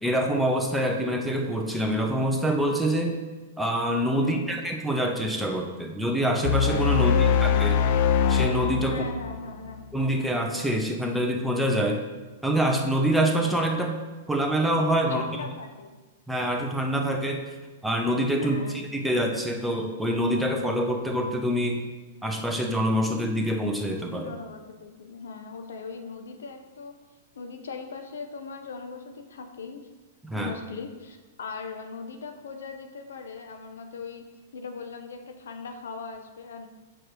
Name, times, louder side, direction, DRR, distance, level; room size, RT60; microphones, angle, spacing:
voice 1, 0.0-3.2 3.6-7.3 7.6-7.7 8.3-9.0 9.9-12.0 12.4-14.0 14.3-15.4 16.3-17.4 17.8-18.6 18.9-21.8 22.2-24.3 30.2-30.5, right 1 dB, ahead, 1 dB, 0.9 m, -25 dB
sound 1, 6.4-9.8, left 7 dB, 55° left, 0.5 m, -23 dB
voice 2, 6.9-7.7 8.9-9.9 15.1-16.0 18.4-18.8 24.2-26.9 27.3-29.8 30.3-34.2 34.5-36.7, left 4 dB, 80° left, 6 dB, 0.8 m, -39 dB
6.3 x 4.8 x 4.8 m, 1.3 s
hypercardioid pair, 120°, 0 cm